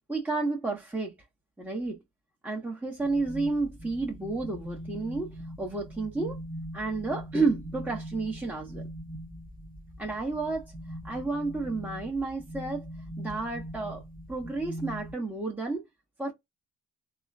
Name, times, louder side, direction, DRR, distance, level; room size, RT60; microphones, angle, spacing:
voice 1, 0.1-1.1 1.6-2.0 2.4-6.4 6.7-8.9 10.0-10.7 11.0-12.9 13.2-14.0 14.3-15.8 16.2-16.3, right 3 dB, 5° right, 1.1 m, -31 dB
sound 1, 3.0-15.1, equal, 25° right, 1.4 m, -41 dB
3.5 x 2.6 x 2.3 m
hypercardioid pair, 45°, 36 cm